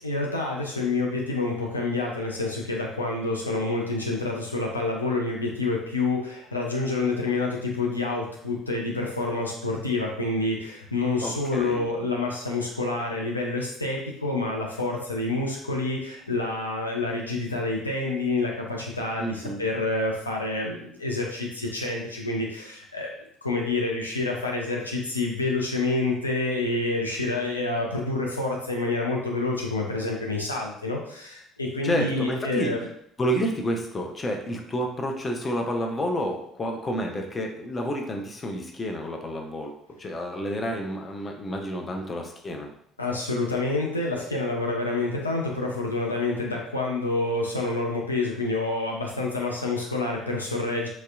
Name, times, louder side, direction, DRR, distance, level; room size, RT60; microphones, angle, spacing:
voice 1, 0.0-23.1 23.4-32.8 43.0-50.9, left 2 dB, 85° left, -1 dB, 0.4 m, -28 dB
voice 2, 11.2-11.9 19.2-19.6 31.8-32.7 33.2-39.7 40.0-42.7, equal, 30° left, 2 dB, 0.6 m, -29 dB
3.0 x 2.7 x 2.4 m, 0.69 s
figure-of-eight pair, 55°, 0 cm